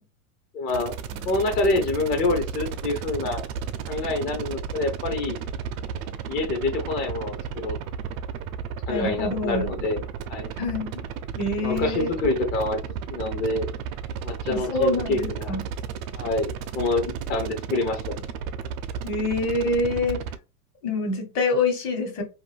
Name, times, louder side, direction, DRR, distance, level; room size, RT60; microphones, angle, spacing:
voice 1, 0.5-0.9 1.2-3.4 3.9-5.4 6.3-7.8 8.9-10.0 10.3-10.5 11.6-12.8 13.1-13.7 14.2-15.5 16.1-18.3, left 2 dB, 25° left, 0.4 m, -26 dB
sound 1, 0.7-20.4, right 7 dB, 65° right, 0.5 m, -33 dB
voice 2, 8.9-9.7 10.6-11.0 11.4-12.1 14.5-15.6 19.0-20.2 20.8-22.2, left 2 dB, 60° left, 1.1 m, -26 dB
2.6 x 2.2 x 3.2 m
supercardioid pair, 125°, 45 cm